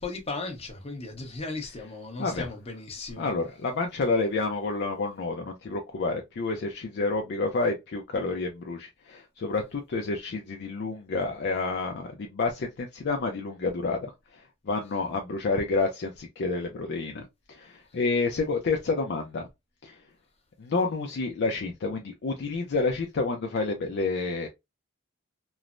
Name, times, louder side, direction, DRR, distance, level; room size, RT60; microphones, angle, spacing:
voice 1, 0.0-3.3, left 3 dB, 30° left, 0.8 m, -36 dB
voice 2, 3.2-14.1 14.7-17.2 17.5-19.5 19.8-20.0 20.6-24.5, left 3 dB, 50° left, 0.4 m, -29 dB
3.1 x 2.0 x 2.4 m
head